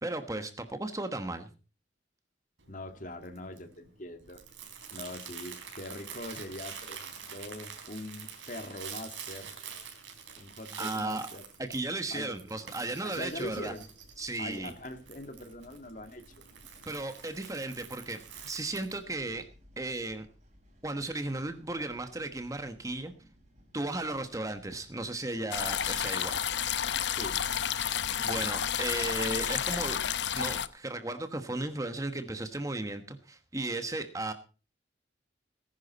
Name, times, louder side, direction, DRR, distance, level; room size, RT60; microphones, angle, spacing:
voice 1, 0.0-1.5 10.8-11.3 11.6-13.7 14.2-14.7 16.9-19.4 19.8-20.3 20.8-23.1 23.7-26.8 28.2-30.1 30.3-34.3, right 2 dB, 15° right, 8 dB, 1.1 m, -35 dB
Crumpling crinkling, 2.6-19.0, right 7 dB, 85° right, 4.0 m, -46 dB
voice 2, 2.7-4.4 4.9-9.5 10.4-11.4 12.1-12.3 13.0-13.9 14.4-16.4 27.1-27.4, left 1 dB, 45° left, 8 dB, 1.8 m, -42 dB
sound 1, 13.3-29.2, equal, 40° right, 6.2 m, -60 dB
sound 2, 25.5-30.7, left 9 dB, 70° left, 0.8 m, -31 dB
18.5 x 10.5 x 4.0 m, 0.36 s
head